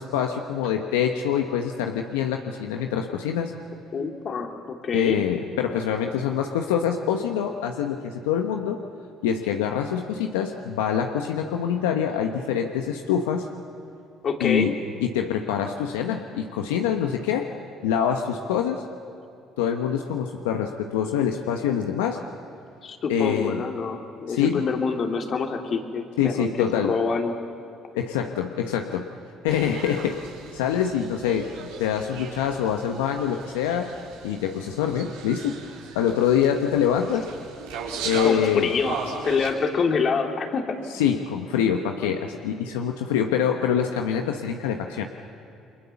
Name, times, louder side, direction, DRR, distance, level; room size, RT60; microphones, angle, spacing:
voice 1, 0.0-3.5 4.9-8.8 9.2-13.5 14.4-14.7 15.0-17.5 17.8-18.8 19.6-22.2 23.1-23.6 24.3-24.6 26.2-27.0 28.0-29.1 29.4-30.2 30.5-33.9 34.2-35.6 35.9-37.3 38.0-38.7 40.9-45.0, left 8 dB, 90° left, 4 dB, 1.1 m, -25 dB
voice 2, 3.9-5.2 14.2-14.7 22.8-27.3 38.2-40.8, left 5 dB, 50° left, 4 dB, 2.9 m, -26 dB
sound 1, 29.5-39.5, right 5 dB, 85° right, 3.9 m, -37 dB
29.5 x 23.5 x 7.1 m, 2.7 s
supercardioid pair, 65°, 0 cm